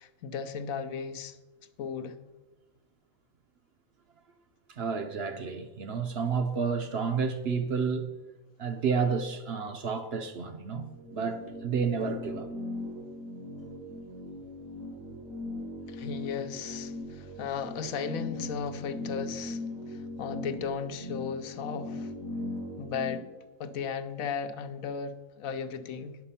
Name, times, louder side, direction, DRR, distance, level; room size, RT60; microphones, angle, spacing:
voice 1, 0.0-1.4 1.8-2.2 15.9-22.1 22.8-23.3 23.6-26.2, left 6 dB, 80° left, 1.1 m, -36 dB
voice 2, 4.7-8.2 8.6-12.5, right 5 dB, 55° right, 0.8 m, -30 dB
sound 1, 10.8-23.2, left 2 dB, 75° right, 1.5 m, -39 dB
9.7 x 6.7 x 5.6 m
omnidirectional pair, 1.4 m